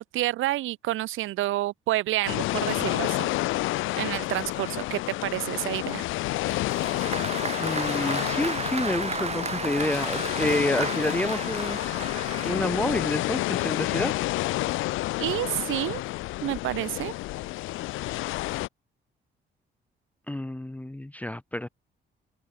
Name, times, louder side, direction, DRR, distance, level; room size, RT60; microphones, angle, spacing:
voice 1, 0.0-3.3 4.0-6.1 15.2-16.0 16.4-17.1, right 15 dB, 85° right, 1.1 m, -29 dB
sound 1, 2.3-18.7, left 18 dB, 85° left, 0.5 m, -29 dB
Applause, 6.5-12.8, right 5 dB, 30° right, 2.5 m, -34 dB
voice 2, 7.6-11.8 12.4-14.1 20.3-21.7, left 1 dB, 5° left, 0.6 m, -29 dB
cardioid pair, 90°, 20 cm